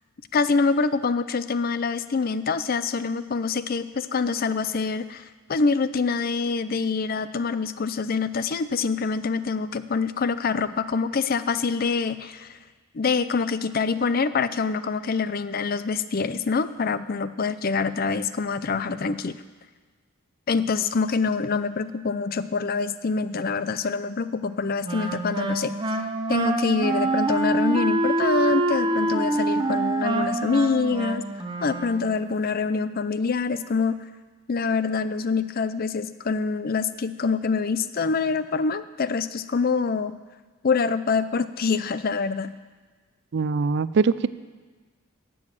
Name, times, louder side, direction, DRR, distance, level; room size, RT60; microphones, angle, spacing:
voice 1, 0.3-12.6 12.9-19.4 20.5-25.7 26.3-31.3 31.6-34.0 34.5-40.2 40.6-42.5, left 4 dB, 40° left, 14 dB, 0.4 m, -25 dB
Wind instrument woodwind instrument, 24.8-32.2, right 2 dB, 20° right, 0.7 m, -25 dB
voice 2, 43.3-44.3, right 5 dB, 55° right, 16 dB, 0.4 m, -22 dB
11.5 x 7.8 x 7.7 m, 1.4 s
head